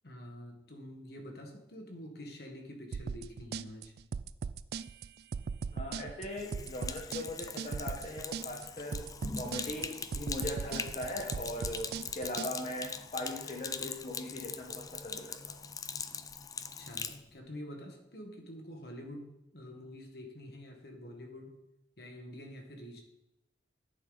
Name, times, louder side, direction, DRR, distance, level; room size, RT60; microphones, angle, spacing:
voice 1, 0.0-3.9 16.8-21.6 22.0-23.0, left 1 dB, 60° left, 3 dB, 1.7 m, -47 dB
sound 1, 2.9-12.5, right 6 dB, 60° right, 0.3 m, -39 dB
voice 2, 5.7-9.1 9.3-15.6, left 1 dB, 40° left, 0 dB, 1.2 m, -40 dB
Sink (filling or washing), 6.3-17.2, left 6 dB, 20° left, 0.4 m, -41 dB
10.5 x 8.4 x 4.1 m, 0.85 s
head